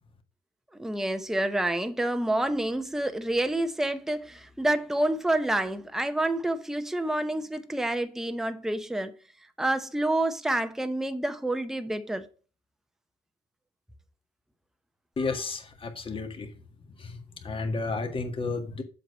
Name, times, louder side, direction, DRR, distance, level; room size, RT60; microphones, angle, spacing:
voice 1, 0.7-9.1 9.6-12.3, right 1 dB, ahead, 0.8 m, -28 dB
voice 2, 15.2-16.5 17.0-18.8, left 3 dB, 30° left, 1.7 m, -32 dB
7.6 x 4.8 x 5.4 m
cardioid pair, 110°, 17 cm